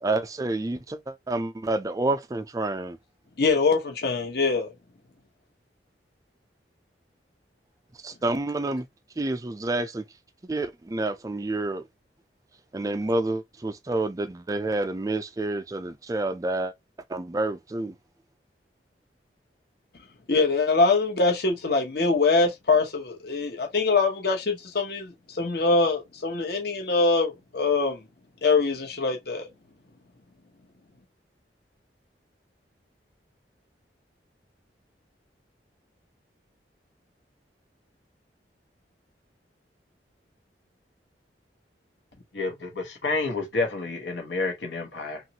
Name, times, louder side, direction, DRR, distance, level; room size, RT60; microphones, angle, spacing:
voice 1, 0.0-3.0 8.0-8.9 9.2-10.0 10.5-11.8 12.7-16.7 17.1-17.9, right 2 dB, 20° right, 0.4 m, -28 dB
voice 2, 3.4-4.7 20.3-28.0 28.4-29.4, left 3 dB, 60° left, 0.9 m, -23 dB
voice 3, 42.3-45.2, left 3 dB, 85° left, 1.1 m, -29 dB
3.0 x 2.4 x 2.8 m
head